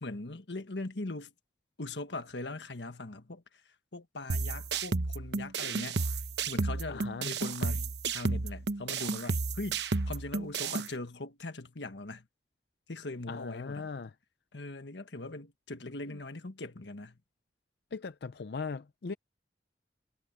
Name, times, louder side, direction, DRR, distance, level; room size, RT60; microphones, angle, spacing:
voice 1, 0.0-1.3 1.8-6.0 6.5-12.3 12.9-13.9 14.5-17.2, left 2 dB, 85° left, 1.5 m, -41 dB
sound 1, 4.3-10.9, right 3 dB, 75° right, 0.9 m, -32 dB
voice 2, 6.9-7.3 13.3-14.1 16.1-16.2 17.9-19.1, left 4 dB, 65° left, 0.5 m, -39 dB
head